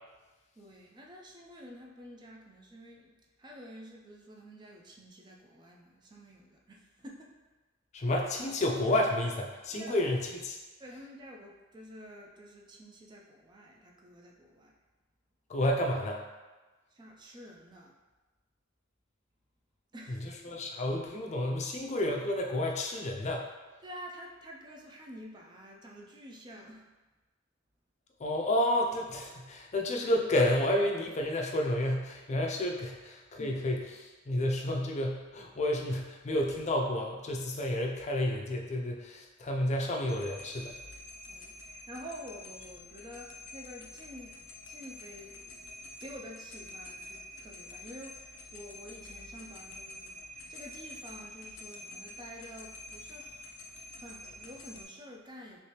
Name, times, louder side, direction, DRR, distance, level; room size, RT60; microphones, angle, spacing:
voice 1, 0.6-7.4 9.7-10.0 10.8-14.8 16.9-18.0 19.9-20.3 23.8-26.9 33.4-33.6 41.3-44.4 44.7-45.7 46.0-55.6, equal, 25° right, -1 dB, 0.4 m, -49 dB
voice 2, 7.9-10.6 15.5-16.2 20.1-23.5 28.2-40.8, left 1 dB, 35° left, 1 dB, 0.4 m, -30 dB
sound 1, 40.1-54.8, left 2 dB, 90° left, 0.5 m, -47 dB
3.2 x 3.1 x 2.9 m, 1.2 s
head